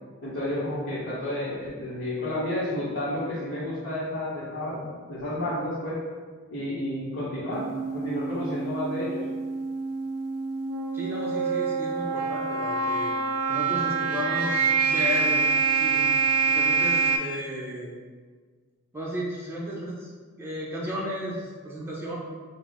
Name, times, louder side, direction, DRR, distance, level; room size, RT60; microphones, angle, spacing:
voice 1, 0.2-6.0 6.5-7.6 7.9-9.2, left 1 dB, 55° left, -11 dB, 1.1 m, -31 dB
sound 1, 7.5-17.2, right 4 dB, 80° right, 0.5 m, -26 dB
voice 2, 10.9-13.1 13.5-15.5 15.7-16.1 16.5-17.9 18.9-20.1 20.4-22.2, equal, 10° right, -5 dB, 0.7 m, -34 dB
5.6 x 2.1 x 3.6 m, 1.5 s
head